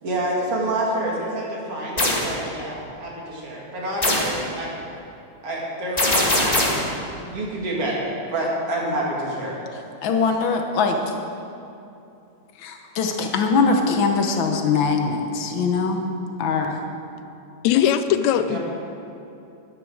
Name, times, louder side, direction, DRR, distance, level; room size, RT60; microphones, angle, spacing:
voice 1, 0.0-4.7 5.4-6.6 7.2-9.6 18.3-18.6, right 1 dB, 50° right, -3 dB, 3.1 m, -27 dB
sound 1, 2.0-2.3 4.0-4.4 6.0-6.9, left 1 dB, 20° left, 1.1 m, -21 dB
voice 2, 10.0-11.0 12.6-16.0 16.4-16.8, left 4 dB, 65° left, 4 dB, 1.3 m, -22 dB
voice 3, 17.6-18.6, left 10 dB, 80° left, 11 dB, 1.8 m, -19 dB
11.5 x 10.5 x 6.4 m, 2.7 s
omnidirectional pair, 3.4 m